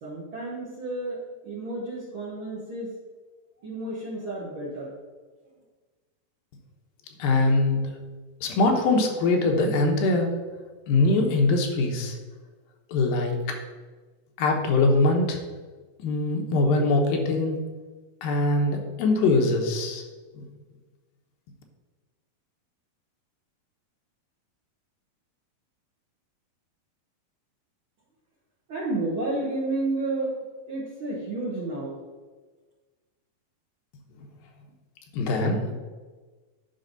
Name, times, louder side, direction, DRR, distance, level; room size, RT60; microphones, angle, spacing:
voice 1, 0.0-1.2 1.4-2.9 3.6-4.9 28.7-32.0, right 2 dB, 75° right, -5 dB, 1.1 m, -31 dB
voice 2, 7.2-7.9 8.4-10.4 10.9-12.2 12.9-13.4 14.4-15.4 16.0-17.6 18.2-20.0 20.4-20.5 34.2-34.3 35.1-35.6, left 2 dB, 80° left, 2 dB, 2.8 m, -22 dB
9.7 x 5.4 x 4.0 m, 1.4 s
omnidirectional pair, 4.2 m